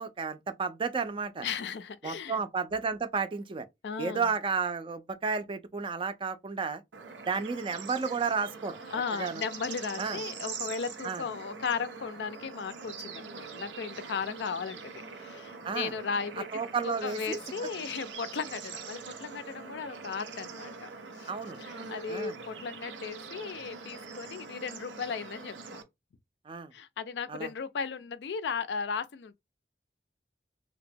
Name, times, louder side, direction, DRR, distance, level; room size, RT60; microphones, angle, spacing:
voice 1, 0.0-1.5 2.0-3.7 4.0-6.8 7.3-8.8 9.1-9.4 10.0-10.2 11.0-11.2 15.6-15.9 16.5-17.4 21.3-21.6 22.1-22.3 26.5-26.7 27.3-27.5, right 5 dB, 30° right, 0.3 m, -32 dB
voice 2, 1.4-2.4 3.8-4.3 8.9-16.5 16.8-20.9 21.2-21.3 21.6-25.8 26.7-29.3, left 5 dB, 70° left, 0.4 m, -36 dB
Bird / Insect / Frog, 6.9-25.8, right 5 dB, 90° right, 0.6 m, -43 dB
2.9 x 2.1 x 2.5 m
head